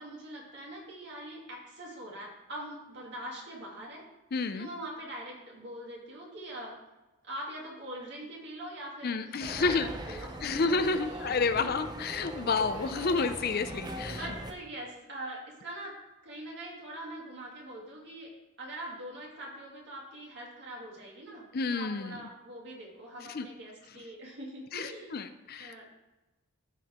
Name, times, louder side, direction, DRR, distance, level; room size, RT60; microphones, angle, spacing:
voice 1, 0.0-4.0 4.6-6.7 7.2-9.3 9.6-11.3 12.6-12.9 14.1-15.9 16.2-18.3 18.6-21.4 21.7-25.1 25.6-25.8, right 1 dB, 50° right, -3 dB, 2.8 m, -43 dB
voice 2, 4.3-4.7 9.0-14.3 21.5-22.2 23.2-23.5 24.7-25.7, left 4 dB, 45° left, 10 dB, 0.5 m, -30 dB
sound 1, 9.4-14.5, right 1 dB, 20° right, 0.6 m, -41 dB
14.5 x 5.4 x 3.6 m, 1.0 s
head